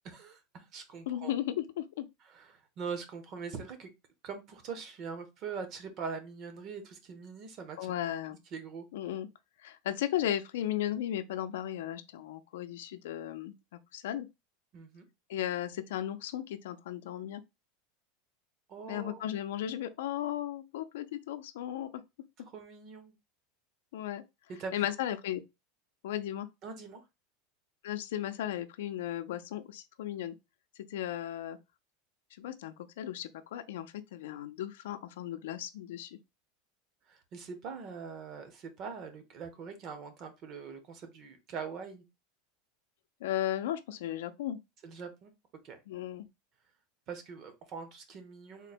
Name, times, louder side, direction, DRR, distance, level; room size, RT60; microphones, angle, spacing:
voice 1, 0.0-1.3 2.2-3.9 4.2-7.9 8.5-8.9 14.7-15.1 18.7-19.3 22.5-23.1 24.5-24.9 26.6-27.0 37.1-42.0 44.8-45.3 45.6-45.8 47.1-48.7, right 5 dB, 35° right, 0.8 m, -42 dB
voice 2, 1.1-2.1 7.8-8.4 8.9-9.3 9.6-13.5 13.9-14.3 15.3-17.4 18.9-22.0 23.9-24.2 24.7-25.4 26.0-26.5 27.8-30.3 30.9-31.6 32.4-36.2 43.2-44.6 45.9-46.3, left 12 dB, 85° left, 0.5 m, -35 dB
3.7 x 2.2 x 4.2 m
supercardioid pair, 160°, 0 cm